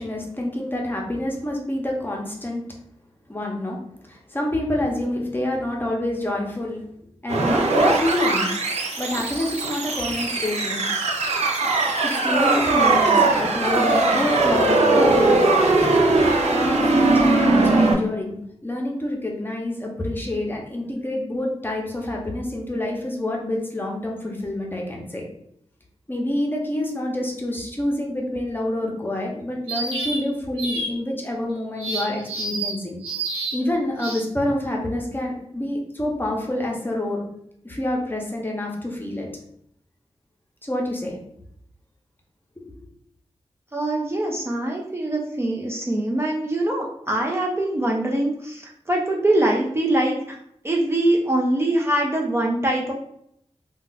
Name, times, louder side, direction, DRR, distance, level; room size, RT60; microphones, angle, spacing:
voice 1, 0.0-2.6 3.3-3.8 4.0-6.9 7.2-8.5 9.0-10.8 12.0-15.2 16.5-25.2 26.1-33.0 33.5-37.2 37.6-39.3 40.6-41.2 42.6-42.7, left 1 dB, 20° left, -1 dB, 0.7 m, -27 dB
sound 1, 7.3-17.9, right 2 dB, 85° right, 0.5 m, -20 dB
sound 2, 29.7-30.2 30.6-30.9 31.8-32.7 33.0-33.6 34.0-34.2, right 2 dB, 55° right, 1.2 m, -29 dB
voice 2, 43.7-50.4 50.6-52.9, right 1 dB, 20° right, -1 dB, 0.4 m, -23 dB
2.3 x 2.2 x 3.9 m, 0.72 s
wide cardioid pair, 95°, 11 cm